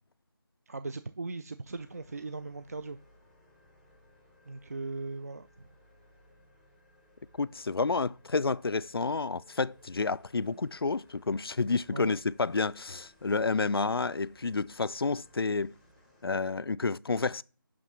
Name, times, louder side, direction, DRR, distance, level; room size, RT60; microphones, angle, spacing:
voice 1, 0.7-3.0 4.5-5.5 10.4-10.6 11.9-12.1, right 3 dB, 40° right, 0.4 m, -38 dB
sound 1, 1.7-16.2, left 1 dB, ahead, 0.7 m, -62 dB
voice 2, 7.4-15.7 16.2-17.4, left 4 dB, 85° left, 0.4 m, -30 dB
11.0 x 3.7 x 6.1 m
figure-of-eight pair, 160°, 12 cm